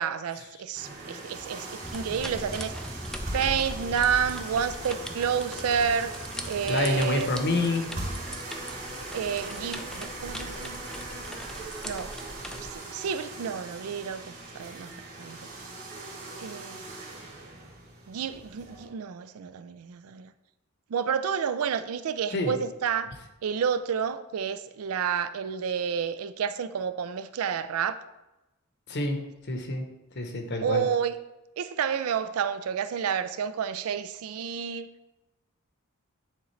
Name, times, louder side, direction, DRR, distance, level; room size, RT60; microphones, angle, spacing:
voice 1, 0.0-2.9 3.3-6.2 6.5-7.3 9.1-10.8 11.8-12.2 12.5-14.9 15.2-15.4 16.4-16.9 18.1-20.3 20.9-23.1 23.4-28.0 30.6-31.1 31.6-34.9, right 7 dB, 75° right, 0.4 m, -30 dB
sound 1, 0.7-18.9, right 2 dB, 55° right, 2.4 m, -40 dB
sound 2, 1.8-12.7, equal, 5° left, 0.3 m, -40 dB
voice 2, 6.6-7.9 22.3-22.5 28.9-29.2 29.5-29.8 30.2-30.8, left 2 dB, 55° left, 0.9 m, -27 dB
9.4 x 3.9 x 3.2 m
head